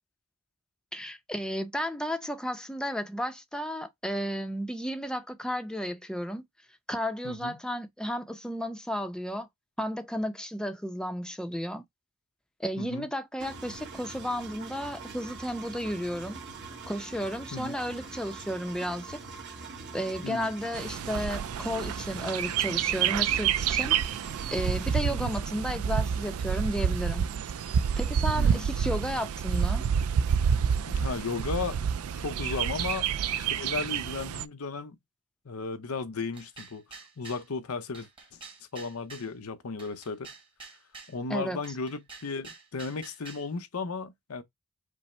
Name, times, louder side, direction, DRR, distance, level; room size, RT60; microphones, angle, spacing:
voice 1, 0.9-6.4 6.9-9.5 9.8-11.8 12.6-16.4 16.9-19.2 19.9-24.0 24.5-27.3 27.6-29.9 41.3-41.6, equal, 5° left, 0.6 m, -33 dB
voice 2, 12.8-13.1 17.5-17.8 20.2-20.5 25.1-25.3 28.4-28.7 30.9-31.8 32.2-33.1 33.4-35.0 35.4-36.8 37.2-38.4 38.7-40.3 41.1-44.4, left 4 dB, 85° left, 0.8 m, -35 dB
Engine, 13.4-24.9, right 4 dB, 55° right, 1.2 m, -43 dB
Bird, 20.7-34.4, right 7 dB, 75° right, 0.4 m, -28 dB
sound 1, 36.3-37.5 37.9-39.3 39.8-41.2 41.6-43.5, right 4 dB, 25° right, 1.3 m, -48 dB
5.4 x 2.1 x 4.2 m
head